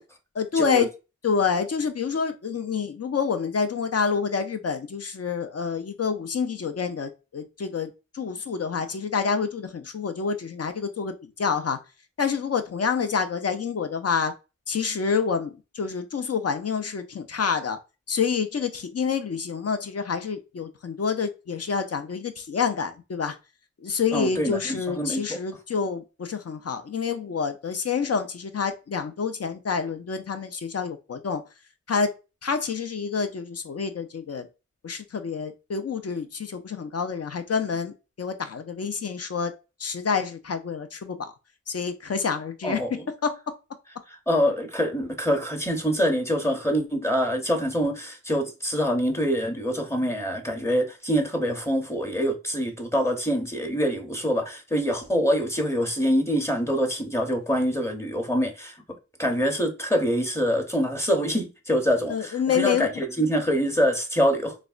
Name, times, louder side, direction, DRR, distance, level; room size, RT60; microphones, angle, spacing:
voice 1, 0.3-0.9 1.2-11.8 12.2-14.3 14.7-17.8 18.1-23.4 23.8-31.4 31.9-32.1 32.4-34.5 34.8-39.5 39.8-41.3 41.7-43.4 62.1-62.9, left 6 dB, 50° left, 0.5 m, -28 dB
voice 2, 24.1-25.4 42.6-43.0 44.3-58.8 59.2-64.6, equal, 10° left, 0.8 m, -25 dB
3.3 x 2.1 x 2.4 m
cardioid pair, 45°, 31 cm